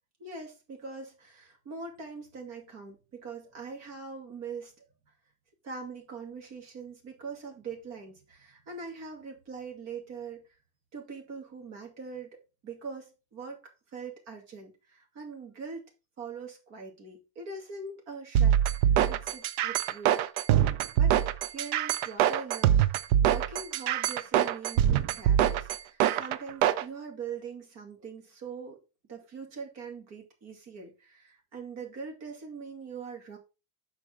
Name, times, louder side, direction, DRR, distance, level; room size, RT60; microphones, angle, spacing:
voice 1, 0.2-4.8 5.6-10.5 10.9-13.6 13.9-15.8 16.2-20.2 21.0-21.2 21.5-22.9 23.2-28.8 29.1-33.4, right 5 dB, 40° right, 2.4 m, -42 dB
sound 1, 18.3-26.8, right 10 dB, 65° right, 0.6 m, -24 dB
6.5 x 4.5 x 5.0 m
cardioid pair, 175°, 41 cm